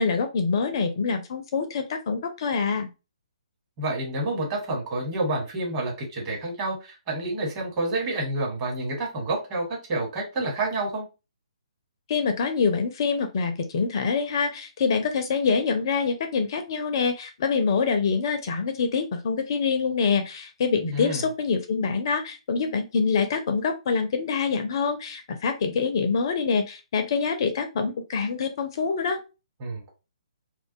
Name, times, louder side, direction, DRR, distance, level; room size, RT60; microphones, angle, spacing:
voice 1, 0.0-2.9 12.1-29.2, left 5 dB, 40° left, 7 dB, 0.4 m, -25 dB
voice 2, 3.8-11.0 20.9-21.2 29.6-29.9, right 2 dB, 30° right, -1 dB, 1.1 m, -29 dB
2.4 x 2.2 x 2.5 m, 0.28 s
figure-of-eight pair, 130°, 4 cm